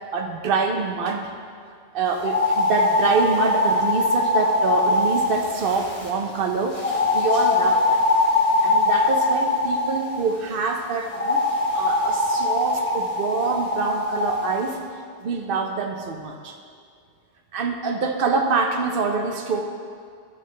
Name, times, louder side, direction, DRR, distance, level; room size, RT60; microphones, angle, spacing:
voice 1, 0.1-1.3 1.9-6.8 7.1-8.0 8.6-11.5 11.7-14.8 15.2-16.6 17.5-19.6, right 4 dB, 65° right, 4 dB, 0.9 m, -25 dB
sound 1, 2.2-6.1 6.7-10.0 11.1-14.3, left 2 dB, 35° left, 1.5 m, -22 dB
12.5 x 6.8 x 3.3 m, 2.2 s
omnidirectional pair, 1.0 m